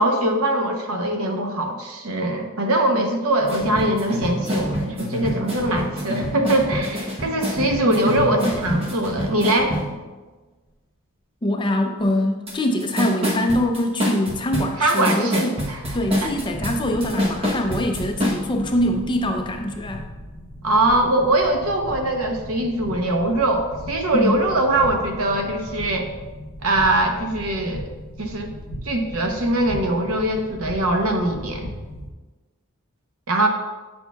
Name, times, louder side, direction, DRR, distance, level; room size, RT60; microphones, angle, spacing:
voice 1, 0.0-9.7 14.8-16.3 20.6-26.1 26.6-27.9 28.2-28.5 28.8-31.7 33.3-33.5, right 1 dB, 75° right, 4 dB, 0.8 m, -22 dB
sound 1, 3.4-10.0 12.5-12.6 12.8-18.4, equal, 25° right, 1.0 m, -26 dB
voice 2, 11.4-15.6 15.9-20.1 24.1-24.4, left 1 dB, 20° left, 3 dB, 0.5 m, -23 dB
sound 2, 15.8-32.1, equal, 65° left, 1.1 m, -37 dB
8.7 x 6.2 x 2.3 m, 1.3 s
head